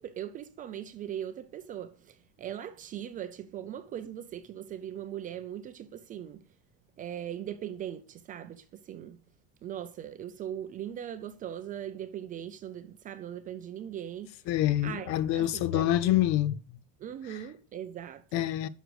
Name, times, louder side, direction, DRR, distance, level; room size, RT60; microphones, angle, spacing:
voice 1, 0.0-6.4 7.0-9.2 9.6-14.3 14.8-16.1 17.0-18.5, right 10 dB, 20° right, 0.5 m, -40 dB
voice 2, 14.5-16.6 17.3-17.4 18.3-18.7, left 13 dB, 45° left, 0.6 m, -26 dB
11.0 x 6.6 x 4.7 m
cardioid pair, 180°, 39 cm